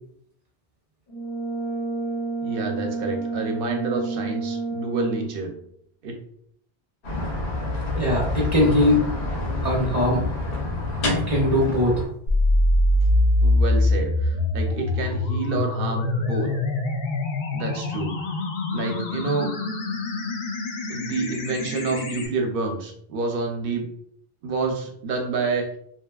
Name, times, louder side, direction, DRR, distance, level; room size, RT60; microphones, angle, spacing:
Brass instrument, 1.1-5.5, right 4 dB, 45° left, 0.4 m, -29 dB
voice 1, 2.4-5.5 6.0-6.1 13.4-16.5 17.5-18.1 18.7-19.5 20.9-23.9 24.4-25.8, right 3 dB, 65° right, 2 dB, 0.7 m, -28 dB
sound 1, 7.0-12.1, left 2 dB, 90° left, 1.1 m, -27 dB
voice 2, 8.0-9.0 9.6-10.2 11.3-12.0, left 1 dB, 20° right, -4 dB, 0.5 m, -20 dB
sound 2, 12.3-22.3, left 1 dB, 70° left, 0.8 m, -24 dB
2.8 x 2.5 x 2.3 m, 0.67 s
omnidirectional pair, 1.1 m